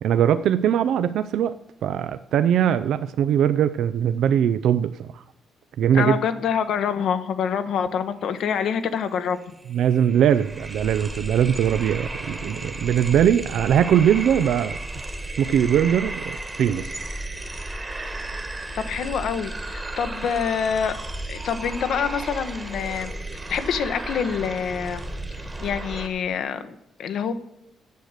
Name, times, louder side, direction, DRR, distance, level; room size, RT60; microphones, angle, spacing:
voice 1, 0.0-1.5 1.8-5.2 5.8-6.2 9.7-14.8 15.4-16.9, right 9 dB, 75° right, 12 dB, 0.4 m, -21 dB
voice 2, 5.9-9.4 18.8-20.9 21.3-23.1 23.5-25.1 25.6-26.7 27.0-27.3, left 7 dB, 70° left, 9 dB, 1.0 m, -26 dB
sound 1, 9.1-9.2 9.4-26.1, right 1 dB, 20° right, 1.3 m, -34 dB
9.0 x 6.6 x 8.1 m, 0.82 s
cardioid pair, 90°, 0 cm